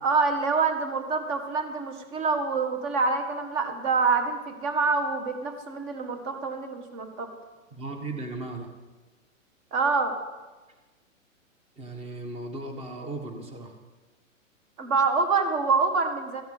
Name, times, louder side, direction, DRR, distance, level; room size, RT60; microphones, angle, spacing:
voice 1, 0.0-7.3 9.7-10.2 14.8-16.4, right 4 dB, 30° right, 7 dB, 1.7 m, -26 dB
voice 2, 7.7-8.7 11.8-13.7, right 2 dB, 15° right, 5 dB, 1.4 m, -36 dB
14.0 x 7.1 x 7.9 m, 1.2 s
hypercardioid pair, 145°, 41 cm